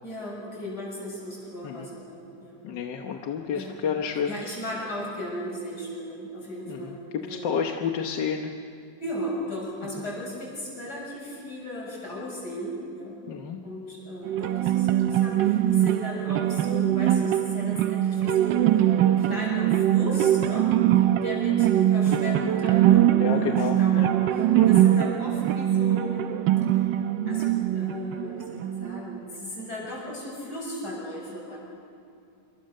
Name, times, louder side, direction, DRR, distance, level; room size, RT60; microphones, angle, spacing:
voice 1, 0.0-2.6 3.5-3.7 4.3-7.6 9.0-13.2 13.6-26.3 26.7-26.9 27.3-31.6, left 1 dB, 60° left, -3 dB, 7.8 m, -36 dB
voice 2, 2.6-4.4 6.7-8.5 13.3-13.6 23.1-24.1 24.5-24.9, left 7 dB, 80° left, 3 dB, 1.8 m, -30 dB
sound 1, 14.2-29.2, right 12 dB, 90° right, 1.4 m, -22 dB
27.5 x 23.5 x 6.6 m, 2.4 s
omnidirectional pair, 1.9 m